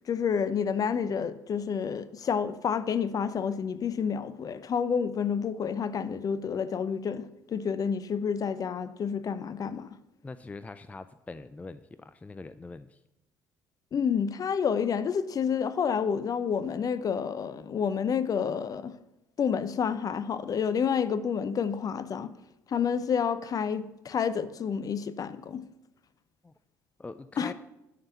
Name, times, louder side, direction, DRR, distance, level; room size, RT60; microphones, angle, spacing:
voice 1, 0.1-10.0 13.9-19.0 19.4-22.3 22.7-25.6 27.4-27.5, left 7 dB, 40° left, 0.8 m, -29 dB
voice 2, 10.2-13.0 26.4-26.5 27.0-27.5, left 3 dB, 15° left, 0.4 m, -43 dB
11.5 x 5.6 x 7.0 m
figure-of-eight pair, 55°, 9 cm